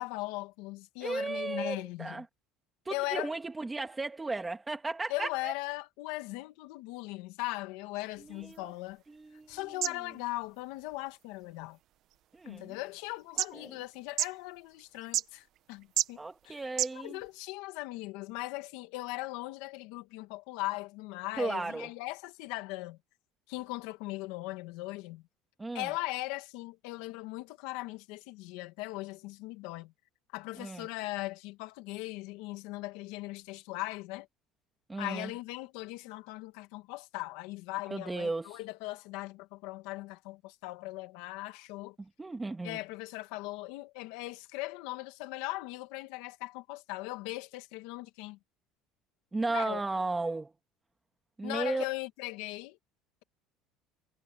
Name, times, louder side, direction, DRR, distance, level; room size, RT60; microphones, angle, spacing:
voice 1, 0.0-2.1 2.9-3.3 5.1-9.0 9.5-11.8 12.5-16.6 16.9-23.0 23.5-25.2 25.7-29.9 30.3-34.3 35.0-42.0 42.6-48.4 49.5-49.8 51.4-52.8, left 20 dB, 75° left, 2.2 m, -39 dB
voice 2, 1.0-2.3 2.8-5.5 8.2-8.7 9.1-9.9 12.3-12.8 13.5-13.8 16.2-17.2 21.4-21.9 25.6-25.9 30.6-30.9 34.9-35.3 37.9-38.6 42.0-42.8 49.3-50.5 51.4-51.9, right 3 dB, 10° right, 2.6 m, -35 dB
sound 1, 8.1-17.4, right 13 dB, 45° right, 1.0 m, -39 dB
cardioid pair, 170°, 0 cm